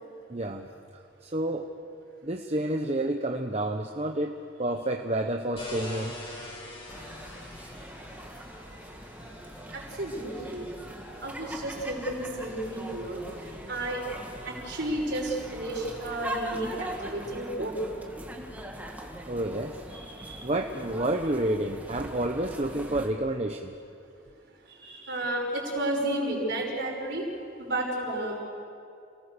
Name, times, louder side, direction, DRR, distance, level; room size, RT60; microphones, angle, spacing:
voice 1, 0.3-0.7 1.2-1.7 2.2-4.3 4.6-6.2 19.3-19.8 20.4-23.7 25.5-25.6, right 1 dB, 30° right, 3 dB, 0.9 m, -29 dB
sound 1, 5.5-16.8, left 1 dB, 25° left, 5.2 m, -47 dB
sound 2, 6.9-23.1, right 1 dB, 10° right, 2.0 m, -42 dB
voice 2, 9.7-10.7 11.2-13.2 13.7-14.0 14.4-17.8 19.9-20.5 24.8-27.2 27.6-28.4, right 1 dB, 55° right, -1 dB, 5.8 m, -32 dB
29.0 x 19.0 x 6.8 m, 2.5 s
head